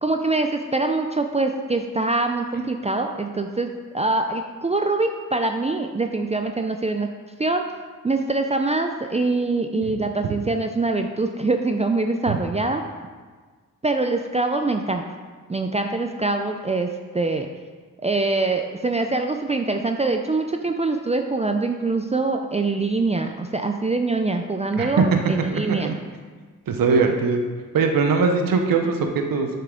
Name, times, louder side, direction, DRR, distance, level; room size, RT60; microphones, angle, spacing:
voice 1, 0.0-7.1 7.4-7.6 8.0-12.8 13.8-15.0 15.5-17.5 18.0-25.9, right 3 dB, 20° right, 5 dB, 0.5 m, -24 dB
voice 2, 24.8-25.1 25.5-25.9 26.7-27.4 27.7-29.5, right 4 dB, 70° right, 4 dB, 0.9 m, -21 dB
7.3 x 5.6 x 3.8 m, 1.5 s
cardioid pair, 55°, 35 cm